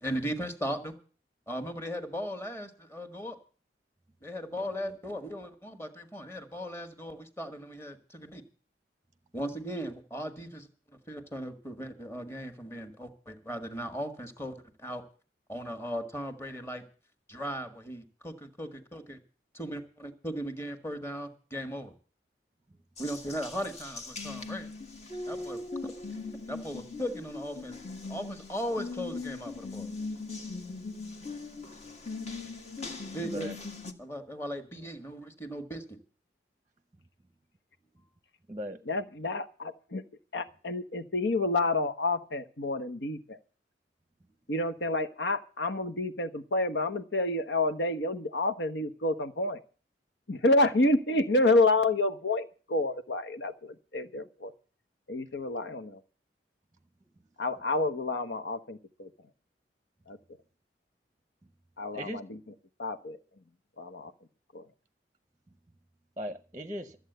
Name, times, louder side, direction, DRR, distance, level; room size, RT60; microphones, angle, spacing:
voice 1, 0.0-0.9 1.5-3.4 4.2-8.4 9.3-10.7 11.1-15.0 15.5-16.8 17.3-19.2 19.5-21.9 23.0-24.7 25.3-25.6 26.5-27.8 28.1-29.9 33.1-33.5 34.0-36.0, equal, 15° left, 7 dB, 1.6 m, -37 dB
voice 2, 4.5-4.9 33.2-33.5 38.5-38.8 61.9-62.2 66.2-67.0, equal, 20° right, 10 dB, 0.8 m, -38 dB
Water tap faucet, 23.0-33.9, left 3 dB, 40° left, 1.4 m, -40 dB
voice 3, 38.9-40.0 40.3-43.4 44.5-49.6 50.3-54.5 55.1-56.0 57.4-59.1 60.1-60.2 61.8-62.4 62.8-63.2 63.8-64.1 64.5-64.7, left 2 dB, 85° left, 9 dB, 1.2 m, -29 dB
13.5 x 8.0 x 8.0 m, 0.39 s
head